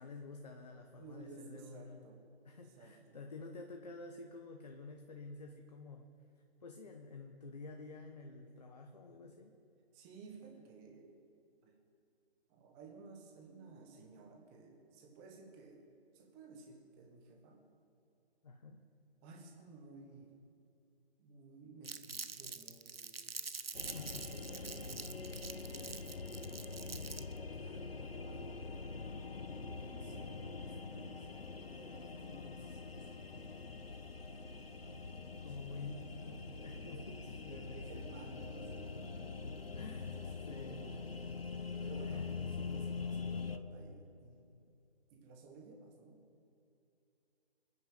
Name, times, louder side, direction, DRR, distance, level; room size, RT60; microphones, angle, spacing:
voice 1, 0.0-2.0 2.4-6.1 6.6-9.6 18.4-18.8 23.9-24.3 35.4-38.0 39.7-40.2 40.5-40.8 42.1-42.3, left 3 dB, 40° left, 3 dB, 1.2 m, -49 dB
voice 2, 1.0-2.2 2.6-3.2 9.9-11.1 11.6-11.7 12.5-15.8 16.1-17.6 19.2-20.3 21.2-23.4 24.0-25.3 25.8-28.6 29.4-33.6 34.5-39.3 40.2-41.1 41.8-44.6 45.1-46.2, right 3 dB, 10° right, 2 dB, 1.4 m, -56 dB
Crumpling crinkling, 21.8-27.4, right 4 dB, 65° right, 1.0 m, -46 dB
sound 1, 23.7-43.6, left 4 dB, 65° left, 1.0 m, -44 dB
25.5 x 9.8 x 5.7 m, 2.7 s
figure-of-eight pair, 145°, 32 cm